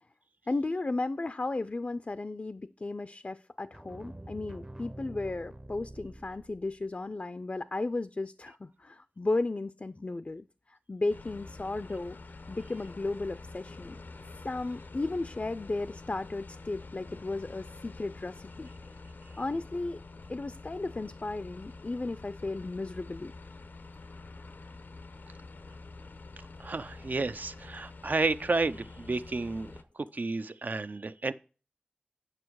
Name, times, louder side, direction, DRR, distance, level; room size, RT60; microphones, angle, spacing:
voice 1, 0.5-12.2 12.5-14.0 14.4-18.7 19.4-20.0 20.3-23.3, left 2 dB, 50° left, 0.4 m, -34 dB
sound 1, 3.7-6.9, right 1 dB, 20° right, 0.6 m, -46 dB
sound 2, 11.1-29.8, left 3 dB, 90° left, 0.7 m, -47 dB
voice 2, 26.6-31.3, right 3 dB, 65° right, 0.5 m, -31 dB
9.8 x 6.2 x 4.7 m
wide cardioid pair, 45°, 3 cm